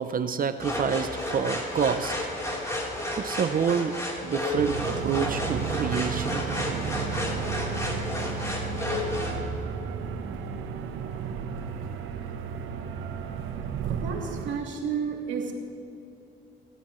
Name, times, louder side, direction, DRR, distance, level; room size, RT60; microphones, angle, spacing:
voice 1, 0.0-2.1 3.2-3.9 4.2-6.4, right 7 dB, 45° right, 10 dB, 0.7 m, -28 dB
sound 1, 0.6-9.4, left 1 dB, 15° left, 3.7 m, -32 dB
sound 2, 4.5-14.6, right 6 dB, 90° right, 1.0 m, -33 dB
voice 2, 14.0-15.5, right 6 dB, 70° right, -1 dB, 3.0 m, -31 dB
28.5 x 13.5 x 3.2 m, 2.8 s
cardioid pair, 90°, 20 cm